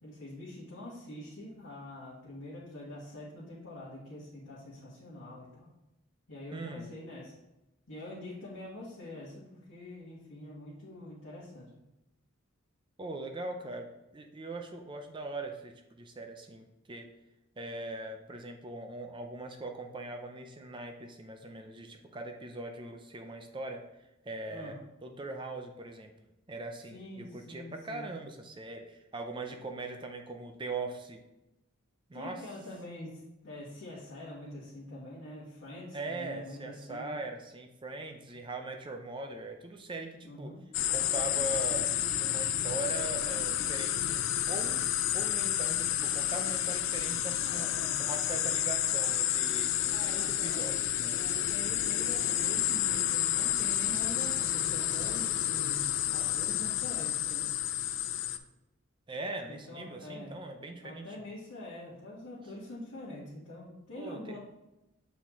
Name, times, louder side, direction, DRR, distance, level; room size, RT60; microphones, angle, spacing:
voice 1, 0.0-5.7 6.3-7.4 7.9-11.8 24.5-24.8 26.9-28.1 32.1-37.2 40.2-40.6 47.4-48.0 49.9-50.8 51.1-57.5 59.5-60.4 60.8-64.4, left 1 dB, 80° left, -9 dB, 1.4 m, -45 dB
voice 2, 6.5-6.9 13.0-17.1 17.6-23.9 24.2-26.1 26.5-31.2 32.1-32.4 35.9-40.5 40.9-47.7 48.0-51.2 59.1-61.2 64.0-64.4, right 2 dB, 25° right, 5 dB, 0.5 m, -41 dB
sound 1, 40.7-58.4, left 11 dB, 65° left, 0.4 m, -30 dB
7.4 x 4.2 x 3.0 m, 0.93 s
head